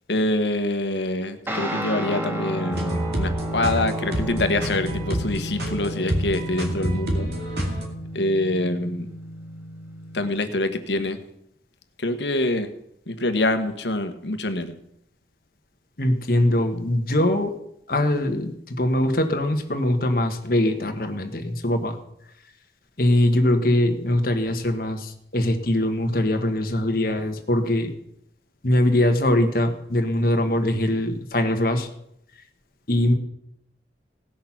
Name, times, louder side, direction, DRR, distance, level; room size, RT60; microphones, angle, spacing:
voice 1, 0.1-7.3 8.1-9.1 10.1-11.2 12.0-12.7 13.1-14.7, left 2 dB, 80° left, 9 dB, 1.2 m, -25 dB
Guitar, 1.5-10.3, right 1 dB, 10° right, 1.5 m, -32 dB
sound 1, 2.7-7.9, equal, 65° right, 2.2 m, -28 dB
voice 2, 16.0-17.5 17.9-22.0 23.0-27.9 28.6-31.9 32.9-33.1, left 1 dB, 55° left, 5 dB, 1.4 m, -22 dB
17.5 x 6.7 x 5.9 m, 0.75 s
head